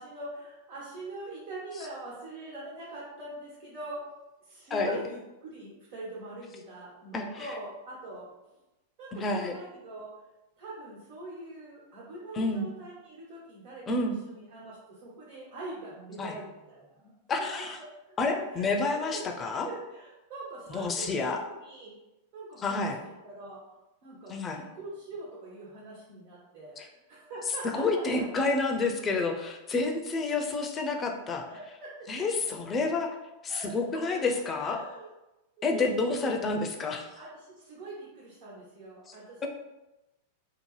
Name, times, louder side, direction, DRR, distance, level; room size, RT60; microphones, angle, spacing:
voice 1, 0.0-4.0 4.4-8.5 9.0-10.1 10.6-17.1 17.4-18.7 18.9-21.9 22.3-23.6 24.0-27.8 31.5-32.1 33.5-33.7 34.1-34.2 34.5-35.1 35.6-36.0 37.1-39.5, right 2 dB, 60° right, -8 dB, 1.2 m, -43 dB
voice 2, 7.1-7.5 9.1-9.5 12.3-12.7 13.9-14.1 16.2-16.4 17.3-17.8 18.2-19.7 20.7-21.4 22.6-23.0 24.3-24.6 26.8-26.9 27.8-31.5 32.1-33.2 33.4-34.8 35.6-37.1 39.1-39.5, left 3 dB, 25° left, 3 dB, 0.4 m, -29 dB
2.8 x 2.0 x 3.2 m, 1.0 s
hypercardioid pair, 95°, 0 cm